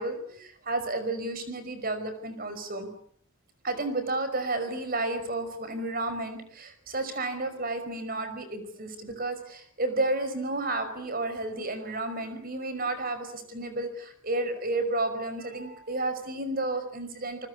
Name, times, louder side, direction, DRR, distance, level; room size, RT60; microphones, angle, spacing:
voice 1, 0.0-2.9 3.6-17.5, right 2 dB, 45° right, 10 dB, 5.5 m, -32 dB
29.5 x 20.5 x 8.6 m, 0.62 s
head